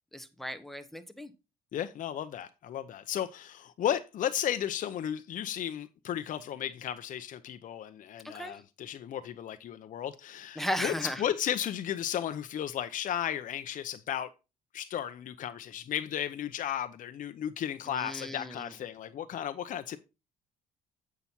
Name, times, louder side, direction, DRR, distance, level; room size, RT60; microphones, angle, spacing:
voice 1, 0.1-1.3 8.3-8.5 10.6-11.2 17.9-18.7, equal, ahead, 1.1 m, -36 dB
voice 2, 1.7-14.3 14.7-20.0, left 10 dB, 50° left, 0.7 m, -34 dB
8.4 x 5.9 x 4.2 m
cardioid pair, 110°, 17 cm